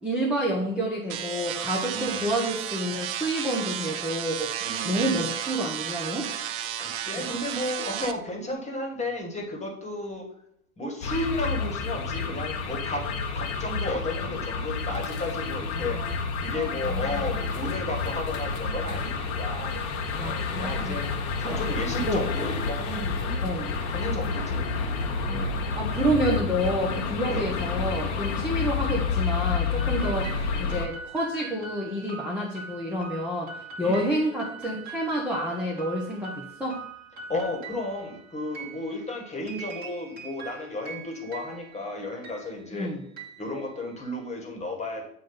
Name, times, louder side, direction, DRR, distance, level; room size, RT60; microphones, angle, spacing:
voice 1, 0.0-4.6 4.8-6.3 15.7-16.2 16.5-17.3 20.1-21.0 21.4-21.6 22.1-22.2 23.4-23.8 25.8-30.3 30.6-33.5 33.8-36.8 42.7-43.0, equal, 5° right, -4 dB, 0.9 m, -29 dB
sound 1, 1.1-8.1, right 10 dB, 45° right, 0.5 m, -33 dB
voice 2, 1.9-2.3 4.6-5.1 6.3-10.3 10.8-16.0 16.4-19.7 20.2-21.1 21.4-24.7 25.2-25.6 27.2-27.5 30.0-30.2 33.8-34.1 37.3-42.9 43.4-45.1, left 1 dB, 15° left, 1 dB, 1.6 m, -33 dB
sound 2, 11.0-30.9, left 5 dB, 50° left, 1.1 m, -29 dB
sound 3, 29.8-44.2, right 4 dB, 20° right, 1.5 m, -43 dB
7.7 x 2.6 x 5.4 m, 0.72 s
hypercardioid pair, 105°, 42 cm